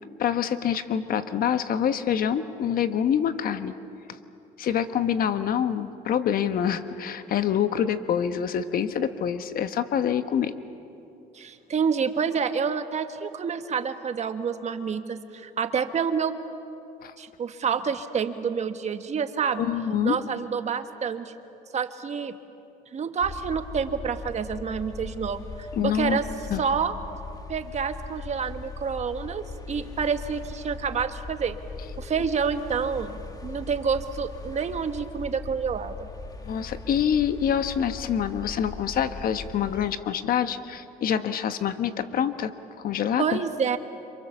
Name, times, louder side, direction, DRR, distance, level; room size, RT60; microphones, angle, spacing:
voice 1, 0.2-3.7 4.6-10.5 17.0-17.1 19.6-20.2 25.8-26.2 26.5-26.6 36.4-42.5 42.8-43.4, left 8 dB, 60° left, 10 dB, 1.3 m, -26 dB
voice 2, 11.3-16.3 17.2-19.6 20.0-21.3 21.7-22.3 22.9-26.2 26.6-26.9 27.5-31.6 32.0-36.1 43.2-43.8, right 6 dB, 40° right, 8 dB, 1.5 m, -28 dB
sound 1, 23.2-39.9, left 4 dB, 20° left, 1.7 m, -40 dB
29.0 x 26.5 x 7.2 m, 2.7 s
cardioid pair, 110°, 17 cm